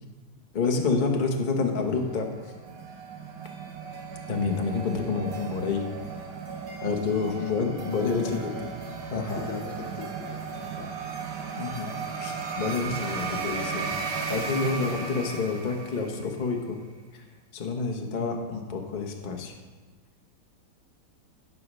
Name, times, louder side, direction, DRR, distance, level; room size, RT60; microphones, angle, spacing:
voice 1, 0.5-2.3 4.3-5.9 6.8-8.5 9.1-9.5 11.6-11.9 12.2-13.9 14.3-16.8 17.1-17.2 17.5-19.5, left 4 dB, 35° left, 2 dB, 0.8 m, -28 dB
sound 1, 1.8-16.4, right 5 dB, 60° right, 1.6 m, -36 dB
voice 2, 7.8-8.7 9.1-10.9 14.9-15.0, left 4 dB, 70° left, 5 dB, 1.6 m, -39 dB
12.0 x 5.4 x 6.3 m, 1.3 s
omnidirectional pair, 2.3 m